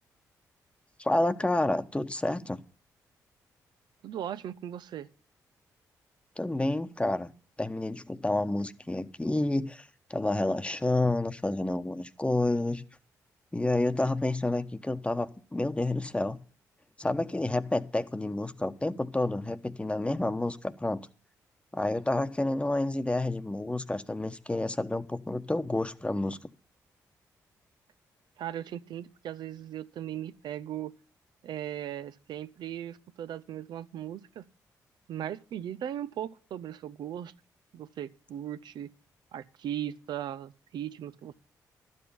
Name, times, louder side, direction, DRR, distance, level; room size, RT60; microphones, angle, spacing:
voice 1, 1.0-2.6 6.4-7.3 7.6-12.8 13.5-16.4 17.0-21.0 21.7-26.4, left 2 dB, 15° left, 1.1 m, -29 dB
voice 2, 4.0-5.1 28.4-30.9 31.4-34.4 35.1-37.3 37.7-38.9 39.3-41.3, right 11 dB, 75° right, 0.7 m, -38 dB
12.0 x 8.2 x 7.0 m
supercardioid pair, 55°, 8 cm